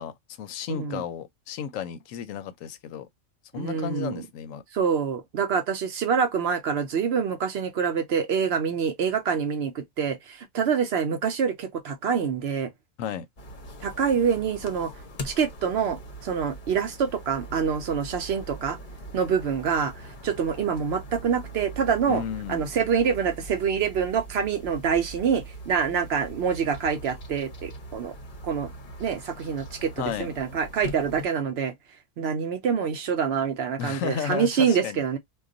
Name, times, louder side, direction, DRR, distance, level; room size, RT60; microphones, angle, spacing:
voice 1, 0.0-3.1 3.5-4.6 13.0-13.3 22.1-22.7 30.0-30.3 33.8-35.0, left 8 dB, 80° left, 0.9 m, -33 dB
voice 2, 0.7-1.0 3.6-4.2 4.7-12.7 13.8-14.9 15.2-18.8 19.1-19.9 20.2-22.2 22.5-28.1 28.4-28.7 29.0-29.9 30.2-31.7 32.2-35.2, right 6 dB, 65° right, 0.7 m, -26 dB
sound 1, 13.4-31.3, right 1 dB, 45° left, 0.7 m, -41 dB
2.3 x 2.2 x 3.7 m
omnidirectional pair, 1.3 m